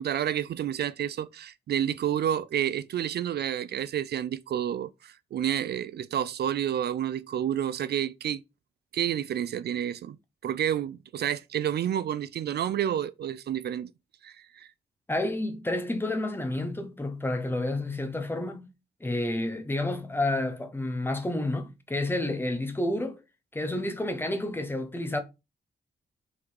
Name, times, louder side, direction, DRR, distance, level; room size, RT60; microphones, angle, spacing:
voice 1, 0.0-8.4 8.9-10.2 10.4-13.9 14.2-14.7, right 10 dB, 65° right, 0.4 m, -29 dB
voice 2, 15.1-18.7 19.0-23.2 23.5-25.2, left 1 dB, 10° left, 1.0 m, -30 dB
6.1 x 3.9 x 4.6 m
wide cardioid pair, 155°, 18 cm